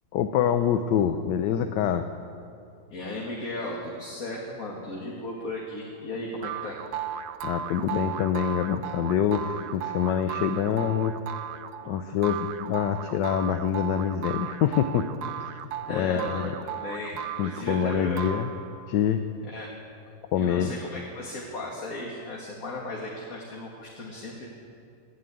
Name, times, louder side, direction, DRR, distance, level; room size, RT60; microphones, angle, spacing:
voice 1, 0.1-2.1 7.4-11.2 11.8-15.1 15.4-15.5 15.9-16.5 17.4-18.5 18.9-19.2 20.3-20.7, left 9 dB, 85° left, 8 dB, 1.3 m, -25 dB
voice 2, 2.9-6.9 15.9-17.1 17.4-18.3 19.4-19.7 20.3-24.5, left 2 dB, 55° left, -3 dB, 2.0 m, -36 dB
sound 1, 6.4-19.0, right 9 dB, 75° right, 1.1 m, -36 dB
12.5 x 9.5 x 9.1 m, 2.5 s
omnidirectional pair, 1.8 m